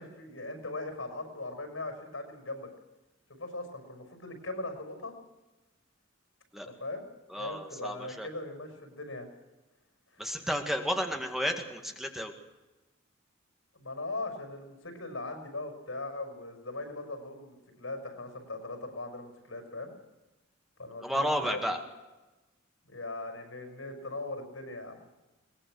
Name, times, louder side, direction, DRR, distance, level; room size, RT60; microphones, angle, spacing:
voice 1, 0.0-2.7 3.4-5.1 6.7-7.1 7.4-9.3 10.1-10.5 13.7-19.9 20.8-21.6 22.8-25.1, left 2 dB, 90° left, 5 dB, 5.7 m, -40 dB
voice 2, 7.3-8.3 10.2-12.3 21.0-21.8, equal, ahead, 3 dB, 1.9 m, -32 dB
22.5 x 19.5 x 6.5 m, 1.1 s
head